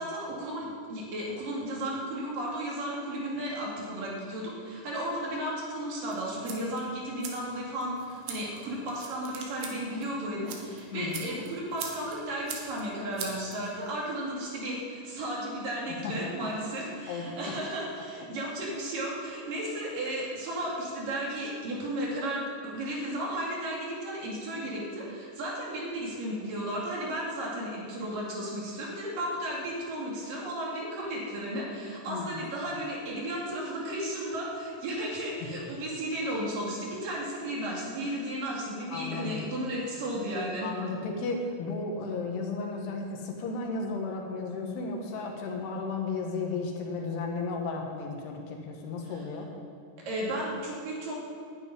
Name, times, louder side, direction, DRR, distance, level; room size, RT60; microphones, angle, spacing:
voice 1, 0.0-40.7 49.1-49.2 50.1-51.1, right 1 dB, 50° right, -4 dB, 3.9 m, -34 dB
sound 1, 6.1-14.1, right 6 dB, 80° right, 3.7 m, -44 dB
voice 2, 10.9-11.3 15.9-16.2 16.4-16.5 17.1-17.6 32.1-32.4 32.7-32.8 38.9-39.4 40.6-49.5, left 4 dB, 70° left, 1 dB, 3.3 m, -34 dB
10.5 x 9.2 x 9.6 m, 2.3 s
omnidirectional pair, 5.2 m